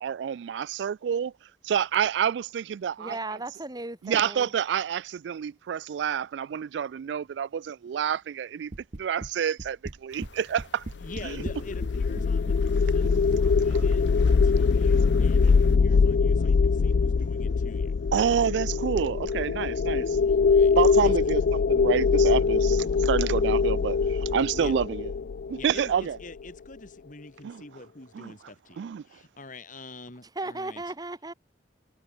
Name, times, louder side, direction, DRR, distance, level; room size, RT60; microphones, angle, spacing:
voice 1, 0.0-1.3 1.6-3.4 4.0-8.7 9.0-10.8 11.2-11.4 15.9-16.0 18.1-20.2 20.7-25.1 25.5-26.2 27.4-27.6 28.1-28.3 28.8-29.0, right 8 dB, 70° right, 0.3 m, -28 dB
voice 2, 3.0-4.5 30.4-31.3, right 2 dB, 20° right, 2.1 m, -36 dB
sound 1, 8.7-9.3 9.6-10.3 10.6-11.9 12.2-12.6 13.0-13.9, right 2 dB, 45° right, 0.9 m, -37 dB
sound 2, 10.1-15.8, left 3 dB, 90° left, 3.3 m, -51 dB
sound 3, 11.0-26.2, left 5 dB, 65° left, 0.4 m, -23 dB
voice 3, 11.0-14.0 14.4-18.0 20.2-21.1 24.5-24.7 25.5-30.8, left 2 dB, 45° left, 3.5 m, -45 dB
head